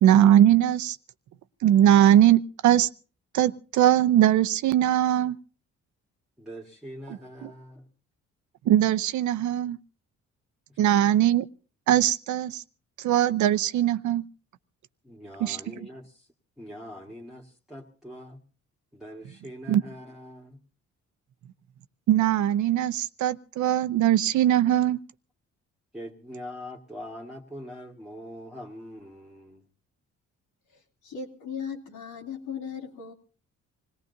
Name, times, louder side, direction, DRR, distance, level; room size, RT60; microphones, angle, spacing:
voice 1, 0.0-1.0 1.6-2.9 3.3-5.4 7.4-7.5 8.7-9.8 10.8-11.5 11.9-12.6 13.0-14.2 15.4-15.6 19.7-19.8 22.1-25.0, right 11 dB, 75° right, 12 dB, 0.7 m, -20 dB
voice 2, 6.4-7.9 10.7-10.8 15.0-16.3 16.6-18.4 18.9-20.6 25.9-29.6, equal, ahead, -2 dB, 1.7 m, -43 dB
voice 3, 30.7-33.1, left 6 dB, 80° left, 1 dB, 2.8 m, -37 dB
26.0 x 18.0 x 2.7 m, 0.35 s
cardioid pair, 90°, 30 cm